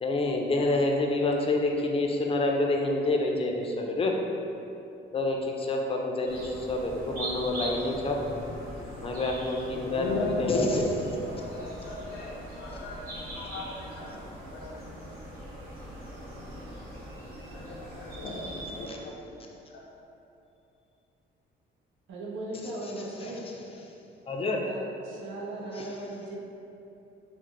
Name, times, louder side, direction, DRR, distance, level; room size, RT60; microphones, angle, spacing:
voice 1, 0.0-4.1 5.1-8.2 9.0-10.7 18.9-19.0 23.2-23.3 24.3-24.6 25.8-25.9, left 2 dB, 30° left, 1 dB, 0.4 m, -28 dB
sound 1, 6.3-18.9, right 1 dB, 45° right, 1.2 m, -41 dB
voice 2, 9.9-10.9 11.2-14.8 16.7-19.4 19.7-19.8, left 2 dB, 85° left, -4 dB, 0.4 m, -37 dB
voice 3, 22.1-23.4 24.6-26.4, right 1 dB, 75° right, -2 dB, 0.7 m, -38 dB
4.2 x 2.0 x 3.0 m, 2.9 s
cardioid pair, 90°, 20 cm